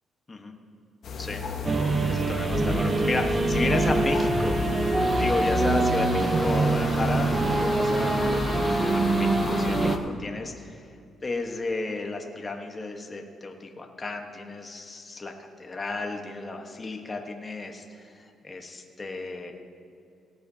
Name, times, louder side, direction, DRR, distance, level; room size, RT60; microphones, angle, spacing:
sound 1, 1.0-10.0, left 4 dB, 60° left, 1.4 m, -31 dB
sound 2, 1.6-10.0, right 3 dB, 30° right, 0.6 m, -25 dB
voice 1, 2.0-7.3 7.6-10.8 11.2-19.5, left 3 dB, 25° left, 3 dB, 1.2 m, -33 dB
18.5 x 11.5 x 2.8 m, 2.5 s
cardioid pair, 90°, 0 cm